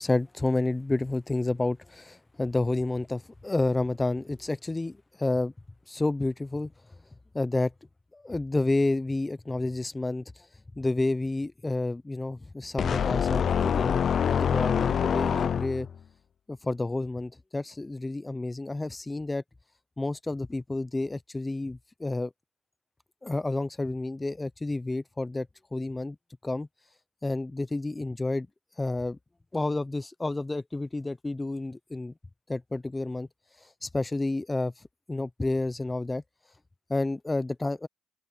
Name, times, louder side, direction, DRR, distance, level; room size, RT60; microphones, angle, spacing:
voice 1, 0.0-5.5 5.9-6.7 7.3-7.7 8.1-10.2 10.8-14.0 14.3-15.9 16.5-19.4 20.0-22.3 23.2-25.5 25.7-26.2 26.4-26.7 27.2-28.5 28.8-29.2 29.5-32.1 32.5-33.3 33.8-34.7 35.1-36.2 36.9-37.9, left 2 dB, 15° left, 0.9 m, -30 dB
sound 1, 12.8-16.0, left 7 dB, 55° left, 0.5 m, -25 dB
open air
cardioid pair, 90°, 0 cm